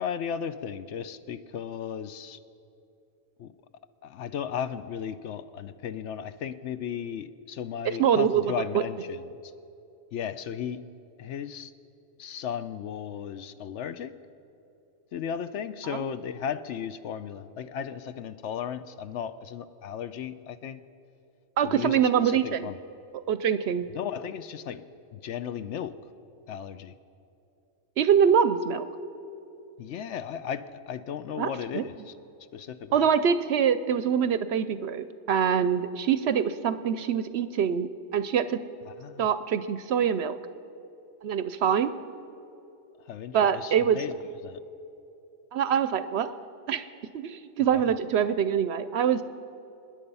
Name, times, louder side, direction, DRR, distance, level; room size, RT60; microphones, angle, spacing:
voice 1, 0.0-2.4 3.4-3.5 4.0-9.5 10.1-10.8 11.2-11.7 12.2-14.1 15.1-20.8 21.6-22.8 23.9-24.8 25.1-25.9 26.5-26.9 29.8-32.1 32.5-33.1 38.9-39.3 43.1-44.1 44.4-44.6 47.7-47.8, left 8 dB, 70° left, 12 dB, 0.9 m, -35 dB
voice 2, 8.0-8.8 15.9-16.0 21.6-22.7 23.1-23.9 28.0-28.8 31.4-31.8 32.9-38.6 39.2-40.3 41.2-41.9 43.3-44.0 45.5-46.4 46.7-46.9 47.1-49.2, right 8 dB, 65° right, 13 dB, 0.7 m, -24 dB
25.5 x 10.0 x 5.5 m, 2.8 s
omnidirectional pair, 1.3 m